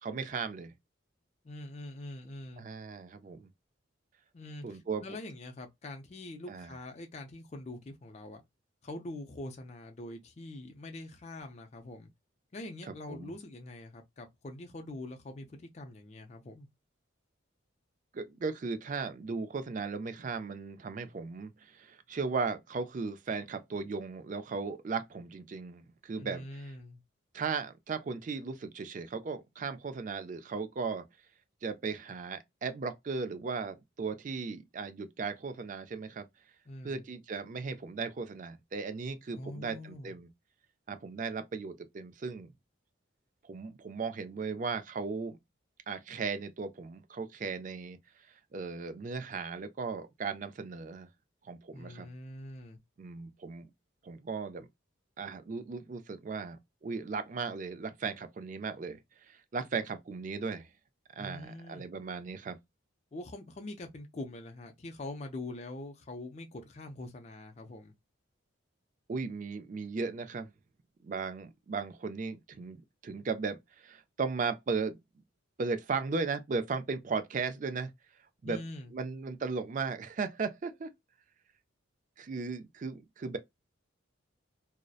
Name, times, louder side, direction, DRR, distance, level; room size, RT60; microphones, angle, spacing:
voice 1, 0.0-0.7 2.6-3.5 4.6-5.0 6.5-6.7 13.1-13.3 18.1-26.7 27.3-31.0 31.6-36.3 36.8-40.3 40.9-42.5 43.4-45.4 45.9-48.0 48.5-51.1 51.4-52.1 53.0-53.7 54.0-54.7 55.2-60.7 61.2-62.6 69.1-70.5 71.0-75.0 75.6-77.9 78.4-78.6 78.9-80.9 82.2-83.4, right 4 dB, 40° right, 0.3 m, -36 dB
voice 2, 1.4-2.6 4.3-8.4 8.8-12.1 12.5-16.7 26.2-27.0 36.7-37.0 39.3-40.1 51.7-52.8 61.2-61.9 63.1-67.9 78.4-78.9, left 2 dB, 35° left, 0.4 m, -44 dB
2.6 x 2.0 x 2.3 m
head